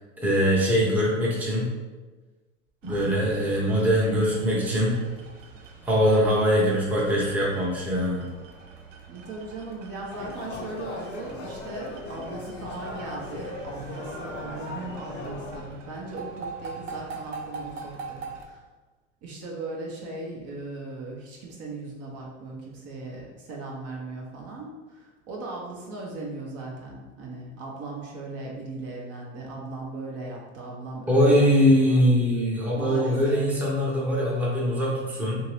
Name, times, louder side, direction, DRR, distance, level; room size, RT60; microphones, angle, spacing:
voice 1, 0.2-1.7 2.8-4.9 5.8-8.2 31.1-35.4, equal, 5° right, -5 dB, 0.7 m, -22 dB
voice 2, 2.8-3.7 9.1-18.6 19.2-31.5 31.8-32.0 32.7-33.4, right 3 dB, 40° right, -2 dB, 0.8 m, -38 dB
sound 1, 2.8-18.4, right 4 dB, 85° right, 0.6 m, -43 dB
sound 2, 10.1-15.6, left 3 dB, 30° left, 0.6 m, -38 dB
2.8 x 2.7 x 3.1 m, 1.3 s
hypercardioid pair, 100°, 37 cm